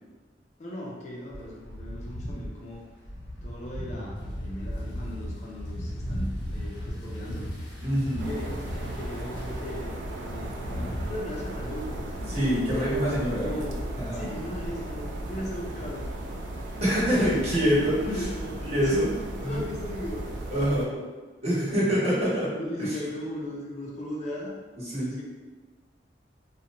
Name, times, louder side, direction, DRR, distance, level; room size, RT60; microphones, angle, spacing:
voice 1, 0.6-2.8 3.4-7.5 8.2-12.3 13.2-13.8 14.1-16.1 16.7-17.5 17.7-21.0 21.5-22.0 22.5-24.6 24.9-25.2, left 1 dB, 40° left, -3 dB, 0.4 m, -38 dB
sound 1, 1.3-11.0, equal, 85° left, 0.8 m, -36 dB
voice 2, 7.8-8.3 12.3-13.5 14.0-14.2 16.8-18.2 18.6-19.1 19.4-19.6 20.5-20.9 21.4-22.5 22.8-23.0 24.8-25.2, equal, 40° right, -9 dB, 1.1 m, -25 dB
sound 2, 8.2-20.9, right 1 dB, 85° right, 0.4 m, -36 dB
2.5 x 2.1 x 2.9 m, 1.3 s
head